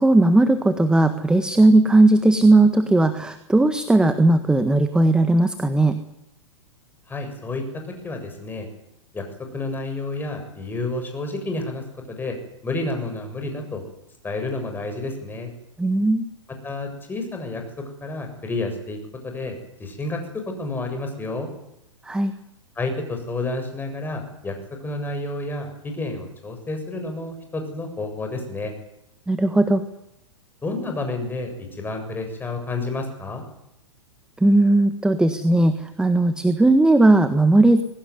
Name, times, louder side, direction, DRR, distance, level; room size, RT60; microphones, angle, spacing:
voice 1, 0.0-6.0 15.8-16.3 22.0-22.3 29.3-29.8 34.4-37.8, right 2 dB, 5° right, 10 dB, 1.6 m, -17 dB
voice 2, 7.1-8.7 9.1-9.3 9.5-12.4 12.6-13.8 14.2-15.5 16.6-19.0 19.2-21.5 22.8-24.6 24.8-28.7 30.6-33.4, left 2 dB, 10° left, 5 dB, 7.4 m, -30 dB
22.0 x 19.0 x 9.7 m, 0.84 s
figure-of-eight pair, 110°, 16 cm